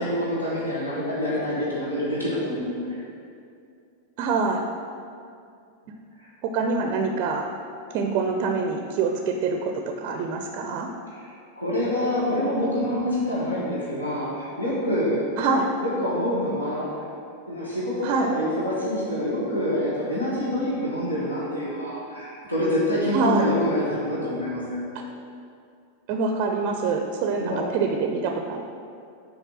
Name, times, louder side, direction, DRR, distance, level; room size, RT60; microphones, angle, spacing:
voice 1, 0.0-3.0 11.1-11.2 11.5-15.4 15.8-17.0 17.5-24.9 27.4-27.6, equal, 80° left, -7 dB, 1.6 m, -26 dB
voice 2, 4.2-4.6 6.4-7.5 7.9-10.9 15.4-15.7 18.0-18.3 23.1-23.5 26.1-28.6, right 4 dB, 40° right, 4 dB, 0.5 m, -25 dB
6.5 x 4.5 x 5.7 m, 2.4 s
figure-of-eight pair, 90°, 0 cm